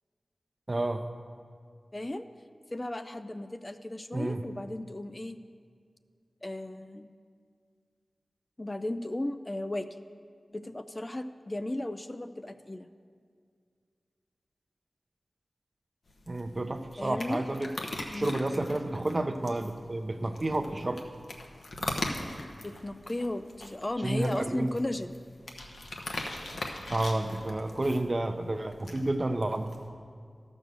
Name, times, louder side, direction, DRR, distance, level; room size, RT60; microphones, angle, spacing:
voice 1, 0.7-1.1 4.1-4.4 16.3-17.7 18.1-21.0 24.0-24.7 26.9-29.8, right 2 dB, 35° right, 8 dB, 0.6 m, -30 dB
voice 2, 1.9-2.3 2.7-5.4 6.4-7.1 8.6-9.9 10.5-12.9 17.0-17.4 18.1-18.4 22.6-25.2, left 1 dB, 25° left, 9 dB, 0.4 m, -35 dB
sound 1, 16.1-29.9, left 2 dB, 80° left, 1.0 m, -41 dB
13.0 x 6.2 x 6.7 m, 2.1 s
wide cardioid pair, 85°, 0 cm